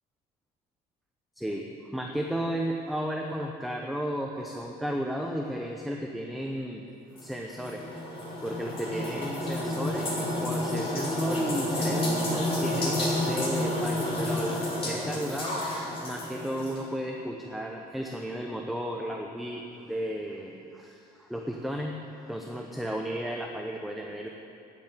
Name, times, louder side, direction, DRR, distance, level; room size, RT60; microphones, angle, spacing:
voice 1, 1.4-6.8 7.2-24.3, equal, ahead, 1 dB, 0.8 m, -34 dB
sound 1, 7.2-16.8, left 1 dB, 35° left, 3.3 m, -30 dB
9.5 x 7.5 x 8.9 m, 2.6 s
cardioid pair, 110°, 17 cm